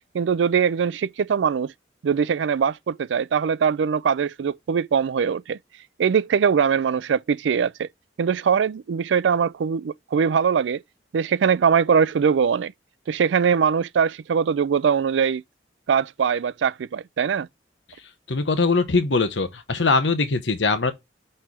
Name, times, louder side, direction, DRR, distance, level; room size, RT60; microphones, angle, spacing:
voice 1, 0.1-1.7 2.0-5.6 6.0-7.9 8.2-10.8 11.1-12.7 13.1-15.4 15.9-17.5, right 6 dB, 85° right, 0.4 m, -22 dB
voice 2, 18.3-20.9, left 3 dB, 90° left, 1.0 m, -21 dB
5.5 x 4.4 x 4.7 m
head